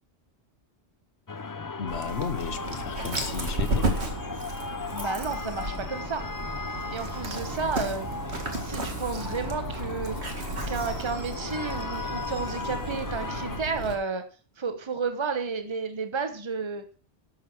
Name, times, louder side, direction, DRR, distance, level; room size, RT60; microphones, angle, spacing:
sound 1, 1.3-13.6, left 4 dB, 30° left, 0.4 m, -37 dB
voice 1, 1.8-4.0, left 7 dB, 80° left, 13 dB, 1.2 m, -34 dB
Dog, 1.9-13.9, right 1 dB, 75° right, 2.3 m, -33 dB
voice 2, 4.9-6.3 6.9-8.1 8.6-10.2 10.7-14.2 14.6-16.8, right 4 dB, 25° right, 8 dB, 1.2 m, -32 dB
12.0 x 7.2 x 6.0 m, 0.39 s
omnidirectional pair, 1.1 m